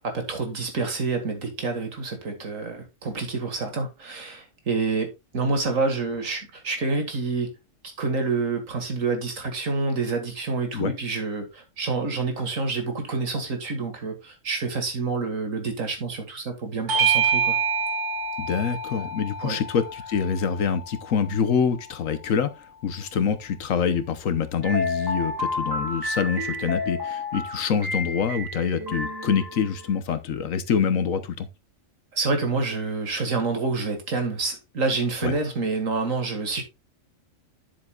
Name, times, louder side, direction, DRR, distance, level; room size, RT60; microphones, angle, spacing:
voice 1, 0.0-5.1 5.3-7.5 8.0-17.6 19.4-19.6 23.1-23.3 32.1-36.6, right 3 dB, 80° right, 2.3 m, -28 dB
Bell / Doorbell, 16.9-21.7, right 5 dB, 65° right, 1.6 m, -27 dB
voice 2, 18.4-22.5 22.8-31.5 35.2-35.3, left 6 dB, 80° left, 1.3 m, -25 dB
sound 1, 24.6-29.9, left 2 dB, 15° right, 2.5 m, -30 dB
9.6 x 7.4 x 2.4 m
omnidirectional pair, 1.4 m